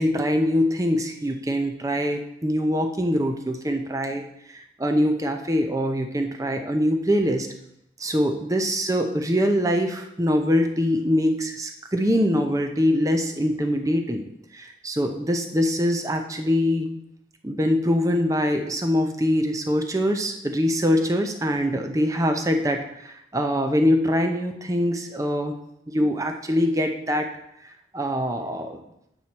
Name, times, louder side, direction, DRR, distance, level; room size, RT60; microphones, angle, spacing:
voice 1, 0.0-7.5 8.0-14.2 14.5-16.9 17.4-25.5 25.9-27.3 27.6-28.8, equal, 20° right, 4 dB, 0.7 m, -23 dB
8.0 x 4.2 x 6.0 m, 0.78 s
head